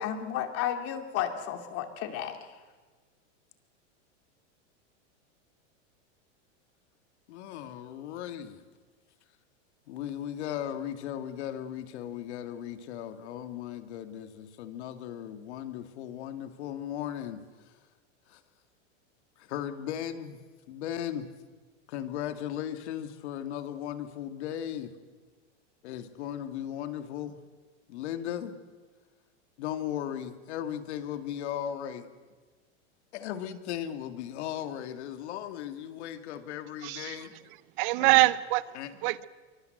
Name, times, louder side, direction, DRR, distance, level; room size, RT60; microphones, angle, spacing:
voice 1, 0.0-2.4, left 10 dB, 40° left, 2.8 m, -32 dB
voice 2, 7.3-8.6 9.9-17.7 18.3-18.4 19.4-20.4 20.7-21.3 21.9-24.9 25.8-27.4 27.9-28.6 29.6-32.1 33.1-37.4 38.0-38.3 38.7-38.9, left 10 dB, 65° left, 2.3 m, -37 dB
voice 3, 36.8-37.2 37.8-38.6 39.0-39.3, right 20 dB, 45° right, 0.8 m, -24 dB
24.0 x 22.5 x 7.9 m
supercardioid pair, 145°, 36 cm